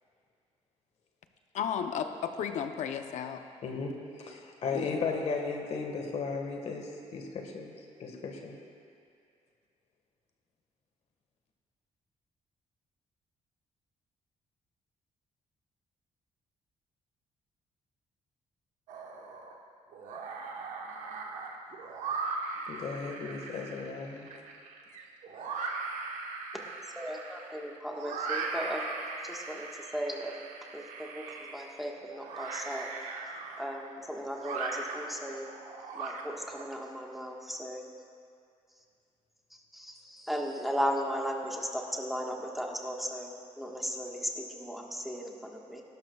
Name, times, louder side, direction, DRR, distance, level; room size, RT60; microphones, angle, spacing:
voice 1, 1.5-3.4 4.7-4.9, left 8 dB, 80° left, 7 dB, 0.7 m, -33 dB
voice 2, 3.6-7.7 8.0-8.6 22.7-24.3, left 4 dB, 60° left, 2 dB, 1.5 m, -35 dB
sound 1, 18.9-19.5 19.9-36.6, right 4 dB, 85° right, 1.2 m, -39 dB
voice 3, 26.9-28.9 29.2-32.9 33.6-35.5 35.9-37.8 39.5-45.8, equal, ahead, -1 dB, 1.4 m, -36 dB
19.0 x 12.0 x 2.3 m, 2.3 s
cardioid pair, 110°, 12 cm